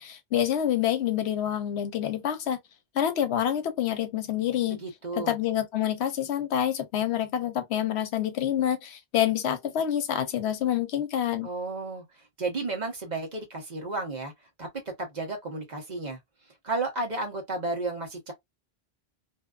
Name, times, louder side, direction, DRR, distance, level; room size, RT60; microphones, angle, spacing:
voice 1, 0.0-2.6 2.9-4.8 5.2-11.5, left 10 dB, 80° left, 0.9 m, -27 dB
voice 2, 4.8-5.4 11.4-12.0 12.4-14.3 14.6-16.2 16.6-18.3, right 3 dB, 45° right, 1.0 m, -32 dB
2.6 x 2.2 x 2.3 m
omnidirectional pair, 1.1 m